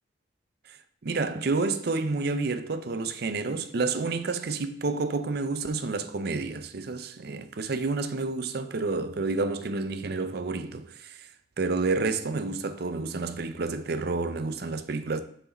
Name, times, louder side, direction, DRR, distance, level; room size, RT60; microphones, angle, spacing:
voice 1, 1.0-11.3 11.6-15.2, right 3 dB, 60° right, 0.6 m, -29 dB
6.5 x 4.8 x 4.0 m
head